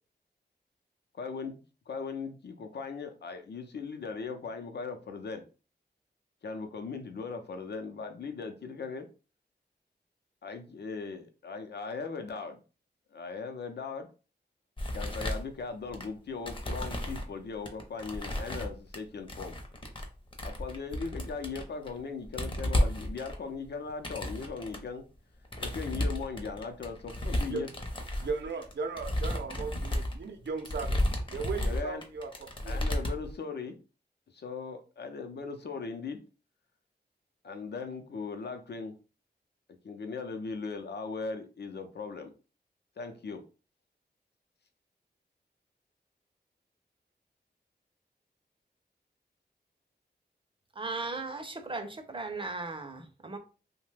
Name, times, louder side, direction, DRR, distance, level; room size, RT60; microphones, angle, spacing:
voice 1, 1.1-1.6 1.9-5.4 6.4-9.1 10.4-12.6 13.1-14.1 14.9-19.6 20.4-25.0 25.6-27.7 31.6-32.0 32.7-33.7 34.3-36.2 37.4-38.9 39.8-42.3 43.0-43.4, left 4 dB, 75° left, 0.6 m, -38 dB
sound 1, 14.8-16.1 16.5-17.3 17.7-19.0 19.3-20.1 20.3-22.0 22.2-24.8 25.5-33.3, left 1 dB, 30° left, 0.6 m, -33 dB
voice 2, 28.2-31.0 31.3-32.8, right 4 dB, 85° right, 0.6 m, -37 dB
voice 3, 50.8-53.4, right 3 dB, 30° right, 0.5 m, -37 dB
2.9 x 2.2 x 3.2 m
wide cardioid pair, 105°, 18 cm